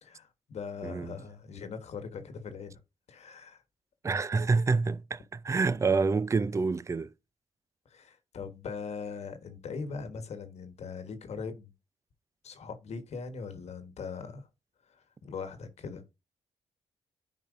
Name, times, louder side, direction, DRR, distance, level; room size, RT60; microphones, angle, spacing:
voice 1, 0.0-2.8 3.1-3.6 7.8-11.7 12.4-14.5 14.8-16.0, left 5 dB, 60° left, 1.3 m, -41 dB
voice 2, 0.8-1.2 4.0-7.1, right 4 dB, 25° right, 0.4 m, -27 dB
10.0 x 4.3 x 2.6 m
supercardioid pair, 60°, 12 cm